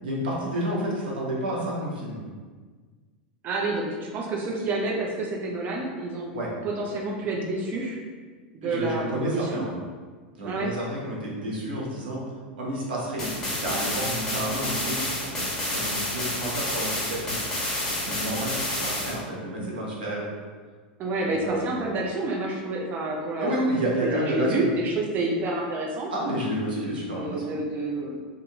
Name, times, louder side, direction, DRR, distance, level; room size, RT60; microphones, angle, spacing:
voice 1, 0.0-2.2 6.3-6.5 8.6-9.7 10.4-12.2 12.6-17.4 18.0-20.3 21.2-21.7 23.4-24.7 26.1-27.5, right 1 dB, 85° right, -4 dB, 0.8 m, -30 dB
voice 2, 3.4-6.3 6.6-8.0 8.5-9.6 10.4-10.7 21.0-26.1 27.1-28.2, right 2 dB, 40° right, -1 dB, 0.5 m, -29 dB
sound 1, 13.2-19.2, left 1 dB, 10° left, 1.2 m, -29 dB
2.6 x 2.5 x 2.7 m, 1.5 s
hypercardioid pair, 100°, 5 cm